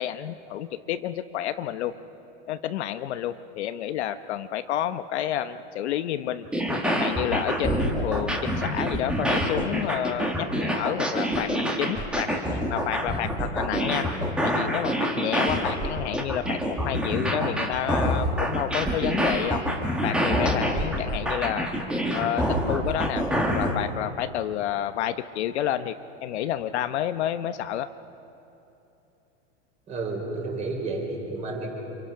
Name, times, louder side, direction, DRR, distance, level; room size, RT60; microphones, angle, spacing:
voice 1, 0.0-2.0 2.5-6.5 6.8-12.3 12.7-14.1 14.4-19.6 20.0-21.7 22.1-23.2 23.5-25.9 26.2-27.9, left 11 dB, 70° left, 10 dB, 1.0 m, -30 dB
sound 1, 6.5-23.8, equal, 5° right, 1.4 m, -26 dB
voice 2, 29.9-31.7, right 3 dB, 20° right, 0 dB, 4.1 m, -31 dB
30.0 x 26.5 x 5.8 m, 2.9 s
supercardioid pair, 175°, 35 cm